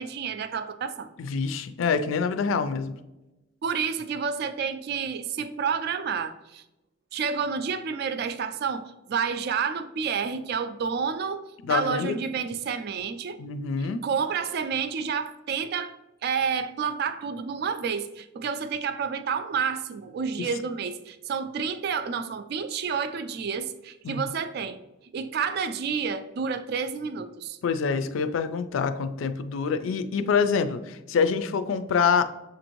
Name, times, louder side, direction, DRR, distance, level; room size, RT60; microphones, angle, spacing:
voice 1, 0.0-1.1 3.6-6.6 7.1-13.4 14.0-16.0 16.2-24.8 25.1-27.6, right 6 dB, 50° right, 11 dB, 0.3 m, -29 dB
voice 2, 1.2-3.0 11.6-12.2 13.4-14.1 20.4-20.5 24.0-24.2 27.6-32.2, left 5 dB, 75° left, 11 dB, 0.3 m, -26 dB
6.7 x 2.6 x 2.9 m, 0.99 s
head